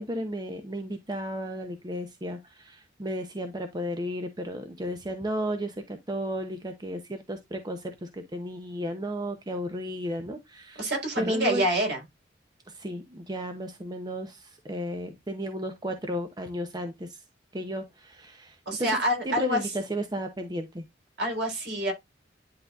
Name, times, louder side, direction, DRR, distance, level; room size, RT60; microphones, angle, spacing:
voice 1, 0.0-10.9 11.2-11.6 12.7-17.2 17.5-18.9 19.2-20.8, equal, 20° right, 0.8 m, -34 dB
voice 2, 10.8-12.0 18.7-19.7 21.2-21.9, equal, 65° right, 4.2 m, -27 dB
10.5 x 3.8 x 2.5 m
head